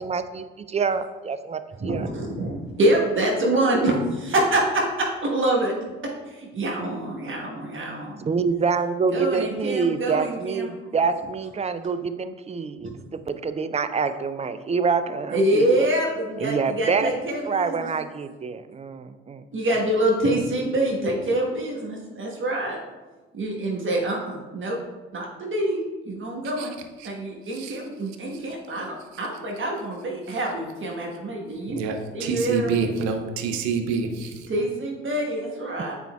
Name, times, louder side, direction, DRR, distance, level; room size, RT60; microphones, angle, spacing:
voice 1, 0.0-1.6 1.9-2.1 8.2-15.9 16.4-17.1 17.5-19.8, right 5 dB, 20° right, 11 dB, 0.5 m, -26 dB
voice 2, 1.8-5.7 6.3-8.2 9.1-10.7 12.8-12.9 15.3-17.9 19.5-22.8 23.3-24.8 25.1-26.7 27.0-31.8 32.1-32.7 34.5-35.9, right 1 dB, 40° right, -2 dB, 1.3 m, -25 dB
voice 3, 31.7-34.3, right 5 dB, 65° right, 5 dB, 0.8 m, -26 dB
9.0 x 4.5 x 2.3 m, 1.2 s
figure-of-eight pair, 40°, 31 cm